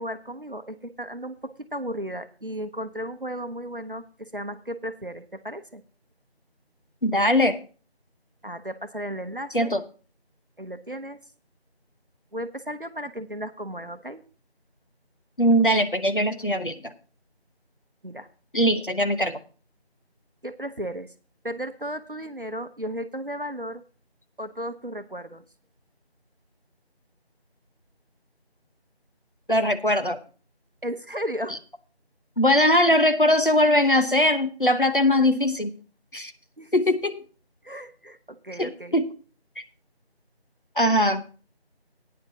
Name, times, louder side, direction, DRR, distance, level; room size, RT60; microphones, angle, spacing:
voice 1, 0.0-5.8 8.4-9.8 10.6-11.2 12.3-14.2 18.0-18.3 20.4-21.1 21.4-23.8 24.4-25.4 30.8-31.6 36.6-36.7 37.6-39.0, equal, 55° right, 9 dB, 0.8 m, -34 dB
voice 2, 7.0-7.6 9.5-9.8 15.4-16.9 18.5-19.4 29.5-30.2 31.5-31.6 32.4-35.8 36.1-36.3 36.7-37.2 38.6-39.1 39.6-39.7 40.7-41.3, left 1 dB, 55° left, 8 dB, 1.0 m, -21 dB
16.0 x 9.5 x 2.8 m, 0.38 s
figure-of-eight pair, 180°, 32 cm